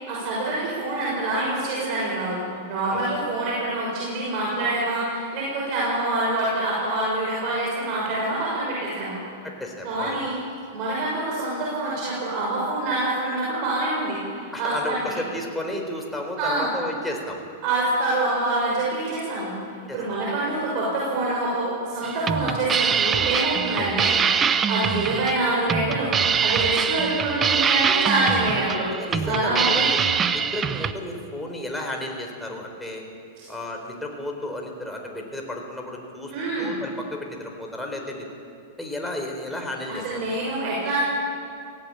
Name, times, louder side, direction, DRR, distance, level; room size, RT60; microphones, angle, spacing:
voice 1, 0.0-9.2 9.8-10.3 10.7-14.2 14.6-15.0 16.4-16.7 17.6-19.5 19.9-28.9 29.2-29.9 36.3-36.7 39.9-41.0, right 2 dB, 50° right, -5 dB, 6.5 m, -26 dB
voice 2, 9.4-10.2 14.5-17.4 19.9-20.0 23.8-24.0 28.9-30.0 30.3-33.0 33.5-36.3 36.6-38.3 38.8-40.4, left 1 dB, 5° left, 1 dB, 3.9 m, -33 dB
sound 1, 22.0-30.9, right 7 dB, 20° right, 0.8 m, -24 dB
18.0 x 17.0 x 8.9 m, 2.4 s
hypercardioid pair, 130°, 0 cm